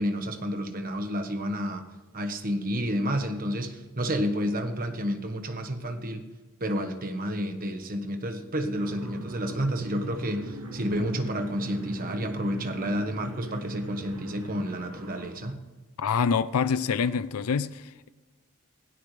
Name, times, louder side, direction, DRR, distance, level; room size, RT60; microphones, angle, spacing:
voice 1, 0.0-1.8 2.1-6.2 6.6-15.6, equal, 40° right, 1.2 m, -30 dB
sound 1, 8.8-15.3, right 1 dB, 75° right, 2.1 m, -39 dB
voice 2, 16.0-18.1, left 6 dB, 80° left, 0.4 m, -26 dB
16.5 x 16.5 x 3.3 m
head